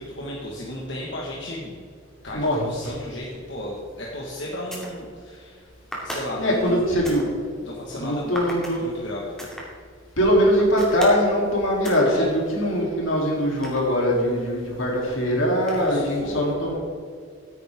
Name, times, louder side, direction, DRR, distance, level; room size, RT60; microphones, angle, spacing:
voice 1, 0.0-1.8 2.2-5.6 6.0-6.8 7.6-8.4 8.8-9.3 12.1-12.3 15.7-16.4, left 1 dB, 60° left, -4 dB, 1.8 m, -34 dB
voice 2, 2.3-2.6 6.4-7.3 7.9-8.8 10.2-16.8, equal, 80° left, -2 dB, 3.6 m, -22 dB
sound 1, 3.8-4.0 4.5-5.0 5.9-7.3 8.3-8.8 9.4-9.7 10.5-11.3 11.8-12.1 12.6-14.3 15.6-16.1, equal, 5° left, 2.6 m, -36 dB
15.5 x 9.3 x 3.8 m, 2.1 s
head